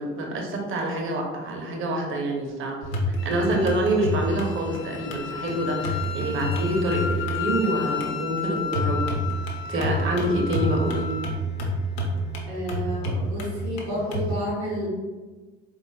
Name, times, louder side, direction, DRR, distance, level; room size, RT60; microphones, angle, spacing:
voice 1, 0.0-2.8 3.2-9.2 9.7-11.1, right 1 dB, 40° right, 0 dB, 0.8 m, -26 dB
Mridangam Jati, 2.8-14.3, equal, 80° left, 0.6 m, -29 dB
Wind instrument woodwind instrument, 3.2-11.3, left 7 dB, 40° left, 0.5 m, -34 dB
voice 2, 12.5-14.9, equal, 85° right, -7 dB, 1.3 m, -30 dB
4.0 x 3.0 x 2.3 m, 1.3 s
hypercardioid pair, 45°, 32 cm